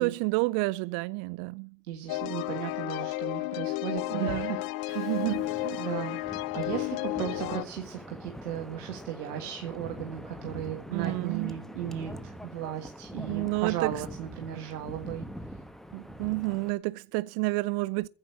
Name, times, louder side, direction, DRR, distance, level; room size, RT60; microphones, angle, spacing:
voice 1, 0.0-1.8 4.1-4.5 5.0-5.9 10.9-11.5 13.1-13.9 15.9-18.1, right 25 dB, 55° right, 0.5 m, -30 dB
voice 2, 1.8-5.2 5.8-15.2, right 10 dB, 80° right, 1.7 m, -36 dB
sound 1, 2.1-7.6, left 18 dB, 50° left, 0.8 m, -32 dB
Wind, 4.9-16.7, equal, ahead, 1.2 m, -44 dB
15.0 x 5.5 x 10.0 m
figure-of-eight pair, 60°, 46 cm